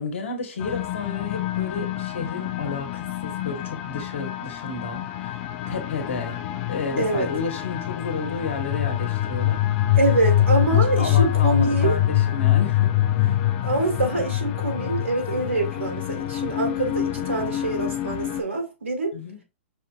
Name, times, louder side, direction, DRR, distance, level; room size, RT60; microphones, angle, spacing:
voice 1, 0.0-6.4 6.7-9.7 10.9-13.4 19.1-19.4, left 4 dB, 75° left, 1.4 m, -32 dB
sound 1, 0.6-18.4, left 13 dB, 40° left, 0.6 m, -25 dB
voice 2, 7.0-7.3 9.9-12.0 13.6-19.1, right 2 dB, 85° right, 1.6 m, -25 dB
5.3 x 2.7 x 2.5 m
hypercardioid pair, 120°, 7 cm